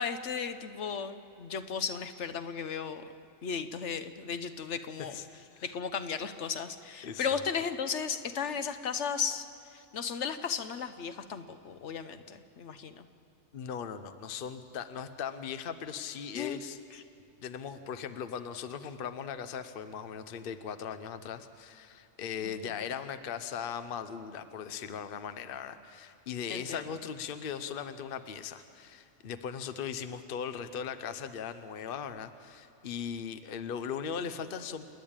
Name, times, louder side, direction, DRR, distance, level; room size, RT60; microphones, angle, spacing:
voice 1, 0.0-3.0 3.4-5.2 5.6-13.1 16.3-16.6 22.4-22.7 26.5-26.8, left 6 dB, 70° left, 10 dB, 1.1 m, -35 dB
voice 2, 7.0-7.4 13.5-16.8 17.4-34.9, left 7 dB, 50° left, 10 dB, 0.9 m, -39 dB
28.5 x 10.5 x 8.8 m, 2.7 s
omnidirectional pair, 1.3 m